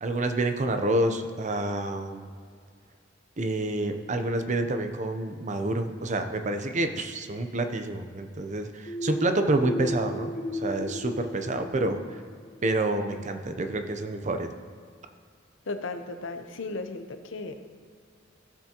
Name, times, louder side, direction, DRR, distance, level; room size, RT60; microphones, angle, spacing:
voice 1, 0.0-2.3 3.4-12.2 12.6-14.5, right 2 dB, 40° right, 7 dB, 0.7 m, -28 dB
sound 1, 8.9-12.5, equal, 40° left, 1.2 m, -35 dB
voice 2, 15.7-17.6, left 3 dB, 75° left, 8 dB, 0.7 m, -35 dB
15.5 x 7.1 x 2.9 m, 2.1 s
head